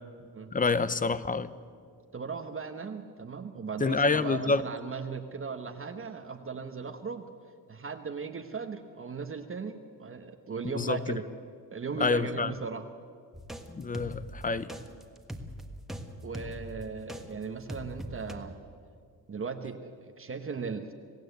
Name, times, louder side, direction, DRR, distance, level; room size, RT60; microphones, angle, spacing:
voice 1, 0.5-1.5 3.8-4.6 10.7-11.2 12.0-12.5 13.7-14.7, left 4 dB, 20° left, 15 dB, 0.7 m, -27 dB
voice 2, 2.1-7.3 7.7-11.2 11.7-12.8 16.2-18.6 19.3-20.9, right 5 dB, 35° right, 5 dB, 1.2 m, -37 dB
sound 1, 13.3-17.2 17.7-18.3, equal, ahead, 1.5 m, -41 dB
27.0 x 17.0 x 8.1 m, 2.2 s
cardioid pair, 135°, 38 cm